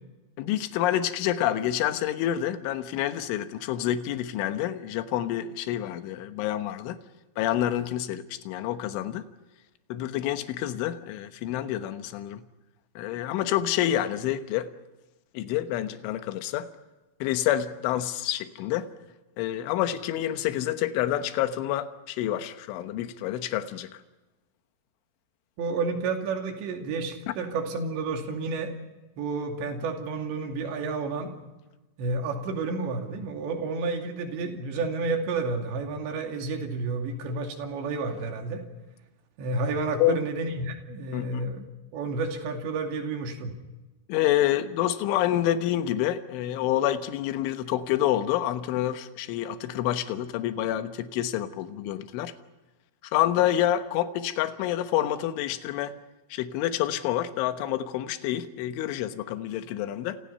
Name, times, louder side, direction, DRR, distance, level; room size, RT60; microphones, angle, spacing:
voice 1, 0.4-7.0 7.4-9.2 9.9-12.4 13.0-14.7 15.3-16.7 17.2-18.9 19.4-24.0 27.3-27.4 40.0-40.2 41.1-41.4 44.1-52.3 53.1-56.0 56.3-60.2, left 12 dB, 75° left, 9 dB, 3.4 m, -28 dB
voice 2, 25.6-28.7 29.2-31.3 32.0-38.6 39.4-41.6 41.9-43.5, right 3 dB, 65° right, 3 dB, 4.6 m, -30 dB
29.5 x 28.0 x 5.7 m, 1.1 s
omnidirectional pair, 5.9 m